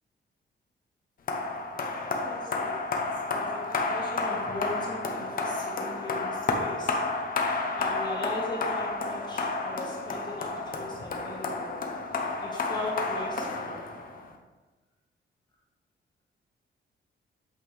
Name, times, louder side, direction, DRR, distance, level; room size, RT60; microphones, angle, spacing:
sound 1, 1.3-14.3, left 3 dB, 50° left, 0.8 m, -31 dB
voice 1, 2.1-7.0 7.7-11.9 12.4-13.9, left 1 dB, 20° left, -4 dB, 1.5 m, -39 dB
8.4 x 5.8 x 3.3 m, 1.2 s
wide cardioid pair, 160°, 19 cm